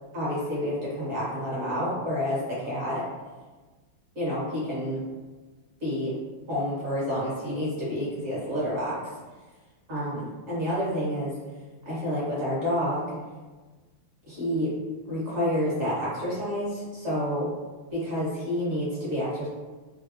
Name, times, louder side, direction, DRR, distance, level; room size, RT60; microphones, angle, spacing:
voice 1, 0.1-3.0 4.1-5.0 5.8-6.2 6.5-9.0 9.9-11.3 11.8-13.2 14.3-14.7 15.0-17.5 17.9-19.5, equal, 40° right, -8 dB, 1.4 m, -29 dB
3.4 x 2.3 x 2.7 m, 1.3 s
omnidirectional pair, 2.1 m